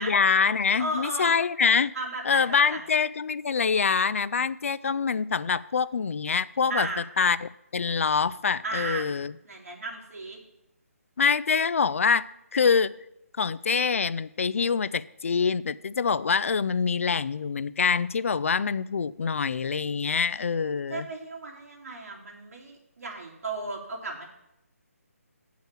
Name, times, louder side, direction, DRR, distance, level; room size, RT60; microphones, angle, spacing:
voice 1, 0.0-1.9 2.3-6.9 7.2-9.3 11.2-12.3 12.5-12.9 13.4-21.1, left 5 dB, 60° left, 17 dB, 0.4 m, -25 dB
voice 2, 0.8-1.3 1.9-2.8 6.7-7.0 8.6-9.1 9.4-10.4 20.9-24.2, right 2 dB, 70° right, -1 dB, 3.0 m, -35 dB
7.3 x 5.6 x 7.3 m, 0.87 s
hypercardioid pair, 160°, 8 cm